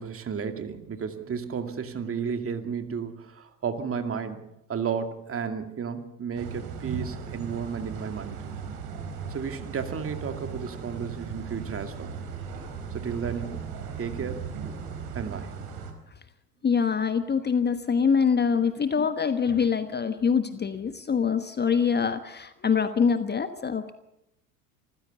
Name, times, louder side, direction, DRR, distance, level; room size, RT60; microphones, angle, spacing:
voice 1, 0.0-8.5 9.3-12.2 12.9-13.6 14.0-14.5 15.1-15.6, right 6 dB, 30° right, 7 dB, 2.4 m, -33 dB
sound 1, 6.4-15.9, right 6 dB, 50° right, 4.5 m, -37 dB
voice 2, 16.6-23.9, left 6 dB, 20° left, 10 dB, 1.2 m, -24 dB
26.0 x 15.5 x 6.9 m, 0.84 s
hypercardioid pair, 80°, 47 cm